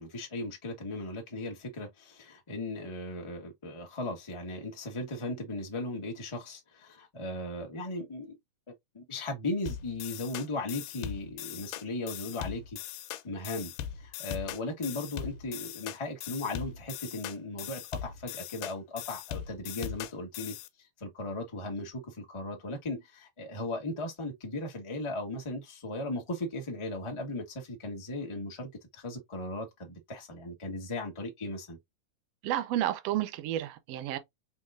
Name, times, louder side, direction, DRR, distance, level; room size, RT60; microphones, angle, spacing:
voice 1, 0.0-8.4 8.9-12.8 13.2-13.7 14.0-20.5 21.0-31.8, left 2 dB, 25° left, 0.6 m, -37 dB
sound 1, 9.7-20.7, left 10 dB, 90° left, 2.3 m, -40 dB
voice 2, 32.4-34.2, right 12 dB, 70° right, 1.6 m, -31 dB
5.3 x 3.8 x 2.5 m
omnidirectional pair, 3.7 m